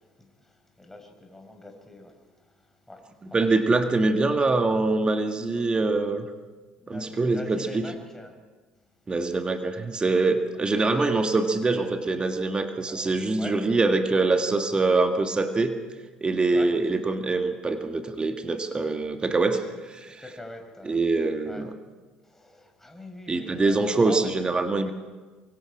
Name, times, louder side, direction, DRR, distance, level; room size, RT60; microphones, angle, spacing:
voice 1, 0.0-3.5 3.7-3.9 6.8-8.3 8.8-9.1 12.9-13.5 16.5-16.7 20.2-21.0 21.5-21.7 22.2-24.3, left 1 dB, 10° left, 3 dB, 5.2 m, -43 dB
voice 2, 3.3-6.3 6.9-7.9 9.1-15.8 16.2-20.2 20.8-21.7 23.3-24.9, right 3 dB, 25° right, 6 dB, 1.8 m, -24 dB
25.0 x 23.5 x 4.9 m, 1.4 s
hypercardioid pair, 60°, 4 cm